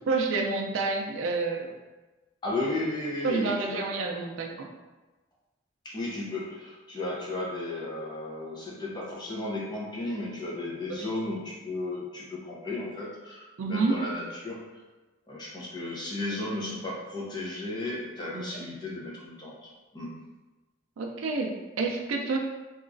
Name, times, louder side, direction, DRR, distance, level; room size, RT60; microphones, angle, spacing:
voice 1, 0.1-1.7 3.2-4.7 10.9-11.1 13.6-14.0 18.3-18.7 21.0-22.4, right 3 dB, 75° right, 2 dB, 0.4 m, -29 dB
voice 2, 2.4-3.9 5.8-14.6 15.3-20.1, left 2 dB, 20° left, -5 dB, 0.5 m, -34 dB
2.9 x 2.4 x 2.5 m, 1.2 s
head